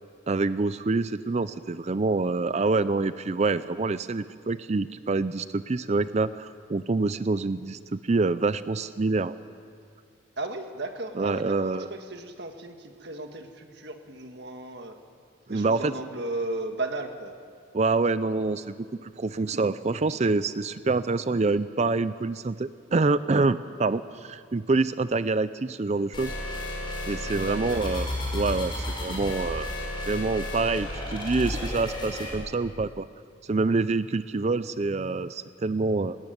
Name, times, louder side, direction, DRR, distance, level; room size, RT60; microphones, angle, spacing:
voice 1, 0.3-9.3 11.2-11.9 15.5-15.9 17.7-26.3 27.1-29.7 30.1-33.1 33.5-36.2, right 3 dB, 35° right, 14 dB, 0.4 m, -26 dB
voice 2, 10.4-15.0 15.5-17.3 27.3-27.8, right 2 dB, 55° right, 5 dB, 1.8 m, -35 dB
sound 1, 26.1-32.3, left 1 dB, 25° left, 5.7 m, -32 dB
19.5 x 18.5 x 9.3 m, 2.2 s
head